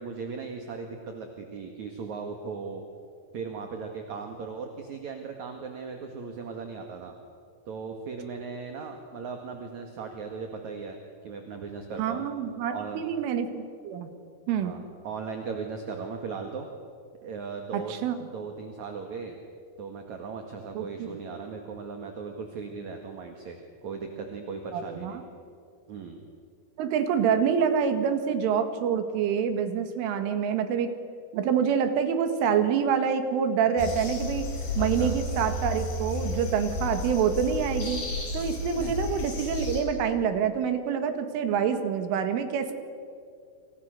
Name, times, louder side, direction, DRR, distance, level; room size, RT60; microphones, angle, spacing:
voice 1, 0.0-2.8 3.3-7.1 7.7-12.3 12.7-13.0 14.6-16.7 17.2-19.4 19.8-23.6 23.8-25.2 25.9-26.2 34.8-35.1 38.8-38.9, right 5 dB, 50° right, 4 dB, 2.4 m, -38 dB
voice 2, 12.0-14.1 14.5-14.8 17.7-18.1 20.8-21.1 24.7-25.2 26.8-30.9 31.3-34.5 34.8-38.0 38.3-42.7, right 7 dB, 85° right, 8 dB, 4.3 m, -26 dB
sound 1, 33.8-39.8, left 2 dB, 55° left, 7.3 m, -32 dB
28.5 x 27.5 x 6.6 m, 2.3 s
omnidirectional pair, 5.6 m